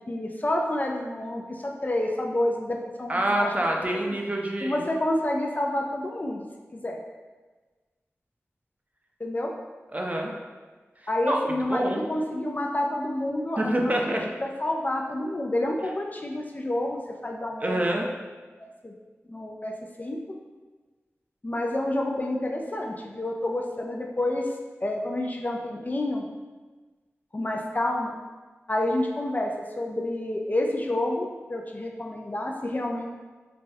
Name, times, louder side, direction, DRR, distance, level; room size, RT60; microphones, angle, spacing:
voice 1, 0.1-3.5 4.1-4.2 4.6-6.5 6.7-7.0 9.2-9.5 11.1-14.1 14.4-18.0 18.8-18.9 19.3-19.7 20.0-20.2 21.4-24.5 24.8-26.2 27.3-28.1 28.7-33.1, left 1 dB, 35° left, 1 dB, 0.3 m, -29 dB
voice 2, 3.1-4.8 9.9-10.3 11.3-11.4 11.7-12.0 13.6-14.2 17.6-18.1, right 1 dB, 30° right, 0 dB, 0.4 m, -26 dB
3.3 x 2.1 x 2.6 m, 1.3 s
cardioid pair, 40°, 5 cm